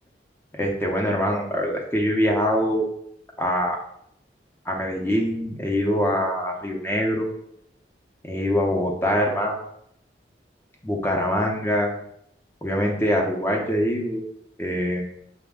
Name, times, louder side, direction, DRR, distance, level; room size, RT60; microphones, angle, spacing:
voice 1, 0.5-2.8 3.4-3.8 4.7-7.3 8.3-9.6 10.8-11.9 12.6-14.2 14.6-15.1, equal, 10° left, 0 dB, 0.5 m, -24 dB
5.9 x 2.1 x 3.5 m, 0.73 s
head